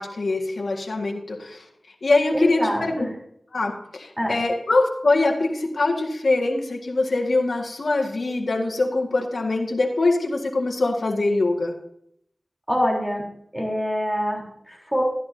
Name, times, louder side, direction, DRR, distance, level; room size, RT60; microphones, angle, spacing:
voice 1, 0.0-1.6 2.0-3.1 3.5-11.7, left 2 dB, 80° left, 1 dB, 1.8 m, -23 dB
voice 2, 2.3-3.1 4.2-4.4 12.7-13.2 13.5-15.0, equal, 5° right, -1 dB, 3.7 m, -25 dB
14.0 x 11.0 x 2.8 m, 0.71 s
wide cardioid pair, 55°, 0 cm